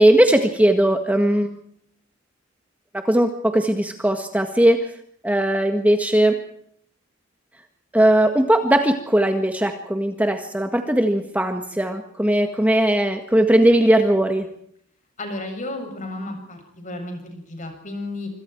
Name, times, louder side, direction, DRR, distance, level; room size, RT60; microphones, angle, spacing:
voice 1, 0.0-1.5 2.9-4.9 5.2-6.4 7.9-14.5, right 1 dB, 10° right, 5 dB, 1.7 m, -19 dB
voice 2, 15.2-18.3, left 2 dB, 40° left, 4 dB, 7.3 m, -33 dB
26.5 x 25.5 x 4.6 m, 0.65 s
head